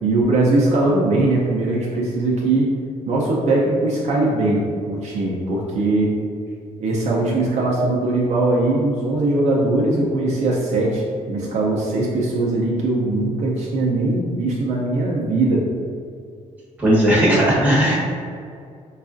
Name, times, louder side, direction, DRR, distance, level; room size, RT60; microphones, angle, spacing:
voice 1, 0.0-2.7 3.1-6.1 6.8-15.7, right 2 dB, 60° right, -4 dB, 0.5 m, -20 dB
voice 2, 16.8-18.0, equal, 10° right, -7 dB, 1.0 m, -16 dB
4.7 x 2.4 x 2.5 m, 2.3 s
cardioid pair, 135°, 13 cm